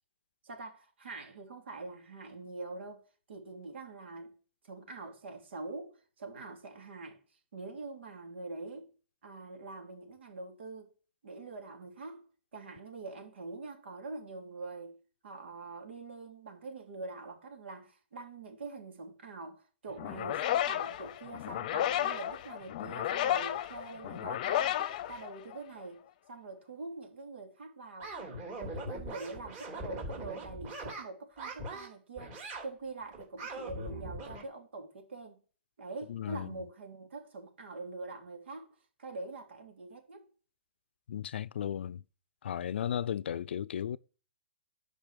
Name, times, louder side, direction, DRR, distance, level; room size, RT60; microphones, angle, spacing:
voice 1, 0.4-3.0 3.3-4.3 4.6-7.2 7.5-8.9 9.2-10.9 11.2-12.2 12.5-15.0 15.2-26.0 26.3-28.2 28.6-32.4 32.6-35.4 35.8-38.7 39.0-40.3, right 3 dB, 75° right, 3.6 m, -44 dB
sound 1, 20.0-25.8, left 12 dB, 40° left, 0.8 m, -33 dB
sound 2, 28.0-31.0 31.4-31.9 32.2-32.7 33.1-34.4, right 2 dB, 25° right, 3.5 m, -41 dB
voice 2, 36.1-36.6 41.1-42.0 42.4-44.0, left 9 dB, 70° left, 0.5 m, -35 dB
11.0 x 5.4 x 6.7 m
hypercardioid pair, 160°, 6 cm